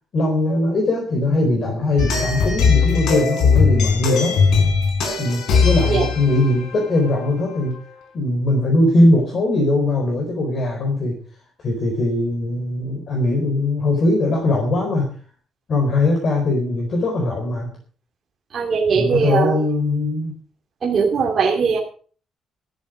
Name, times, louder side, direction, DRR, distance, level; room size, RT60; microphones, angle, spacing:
voice 1, 0.1-4.4 5.2-7.7 8.1-11.2 11.6-15.1 15.7-17.7 19.0-20.4, left 2 dB, 40° left, 1 dB, 4.4 m, -20 dB
sound 1, 2.0-7.8, left 5 dB, 90° left, 4.9 m, -19 dB
voice 2, 18.5-19.6 20.8-21.8, right 5 dB, 35° right, -2 dB, 2.7 m, -19 dB
13.5 x 13.0 x 5.1 m, 0.42 s
cardioid pair, 170°, 0 cm